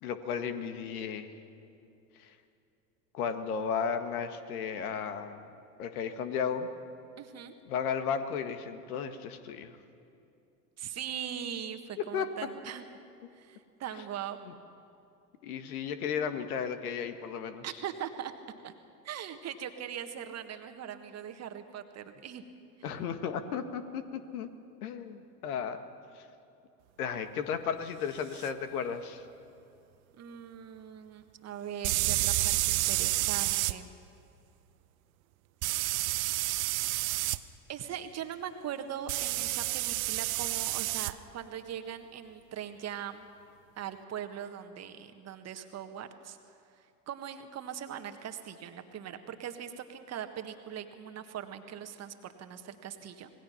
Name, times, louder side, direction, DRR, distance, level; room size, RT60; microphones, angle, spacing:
voice 1, 0.0-1.3 2.2-2.3 3.1-5.5 5.8-6.7 7.7-9.8 12.0-12.3 14.4-14.5 15.4-17.6 22.8-24.5 24.8-25.8 26.1-26.2 27.0-29.2, left 7 dB, 65° left, 9 dB, 1.8 m, -34 dB
voice 2, 7.2-7.5 10.8-12.8 13.3-14.4 17.6-18.3 18.6-18.7 19.0-22.4 22.8-23.0 30.2-33.9 37.7-43.3 43.8-46.4 46.8-53.3, right 9 dB, 30° right, 8 dB, 1.6 m, -41 dB
sound 1, 28.4-28.5 31.8-33.7 35.6-37.4 39.1-41.1, right 18 dB, 60° right, 0.9 m, -29 dB
26.5 x 20.0 x 5.8 m, 2.7 s
hypercardioid pair, 85°, 48 cm